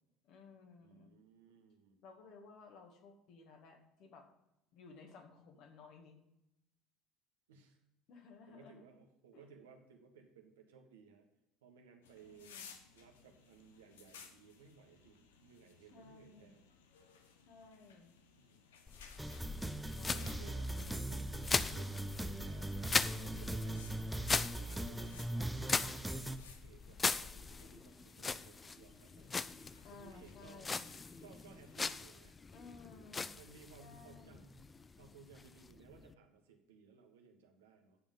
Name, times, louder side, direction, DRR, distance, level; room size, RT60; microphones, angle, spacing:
voice 1, 0.2-1.1 2.0-4.3 4.7-6.2 8.1-8.9 9.3-9.4 12.2-12.7 15.9-16.6 17.5-18.2 19.9-20.7 29.8-30.9 32.5-33.3 33.8-34.5, left 4 dB, 55° left, 3 dB, 1.9 m, -57 dB
voice 2, 0.8-2.0 7.5-7.8 8.5-11.3 11.6-12.5 12.9-16.6 18.4-18.6 19.8-22.7 23.1-23.9 24.5-29.4 29.9-30.7 31.2-32.4 32.8-32.9 33.3-38.0, right 5 dB, 75° right, 3 dB, 1.4 m, -60 dB
sound 1, 12.0-31.9, left 6 dB, 75° left, 1.0 m, -61 dB
sound 2, 18.9-36.1, left 4 dB, 25° left, 0.5 m, -40 dB
sound 3, 19.2-26.4, right 1 dB, 5° right, 0.8 m, -40 dB
9.7 x 7.3 x 5.4 m, 0.87 s
figure-of-eight pair, 60°, 0 cm